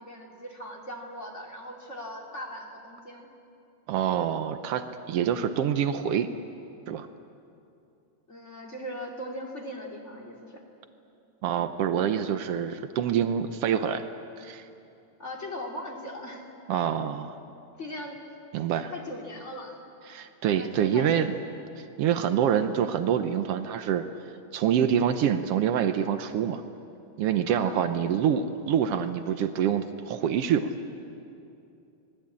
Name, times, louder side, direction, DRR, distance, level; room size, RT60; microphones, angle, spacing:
voice 1, 0.0-3.3 8.3-10.6 15.2-16.5 17.8-18.2 18.9-19.8 20.6-21.3 27.5-27.9, equal, 20° left, 0 dB, 2.8 m, -39 dB
voice 2, 3.9-6.3 6.9-7.1 11.4-14.0 14.4-14.7 16.7-17.4 18.5-18.9 20.1-21.3 21.8-24.0 24.5-26.6 27.2-30.7, right 9 dB, 85° right, 9 dB, 1.3 m, -26 dB
27.0 x 20.5 x 8.7 m, 2.7 s
omnidirectional pair, 3.8 m